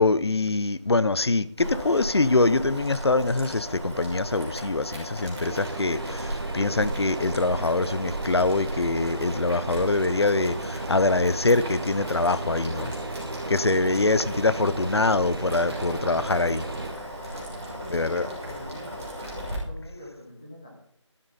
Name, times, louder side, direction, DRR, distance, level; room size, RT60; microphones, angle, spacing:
voice 1, 0.0-12.9 13.5-16.6 17.9-18.3, left 3 dB, 55° left, 0.7 m, -24 dB
Boiling, 1.6-19.5, equal, 5° right, 1.1 m, -36 dB
sound 1, 5.4-16.9, right 2 dB, 50° right, 1.2 m, -35 dB
voice 2, 17.5-20.7, left 1 dB, 15° left, 1.4 m, -44 dB
12.5 x 12.5 x 4.1 m
figure-of-eight pair, 180°, 16 cm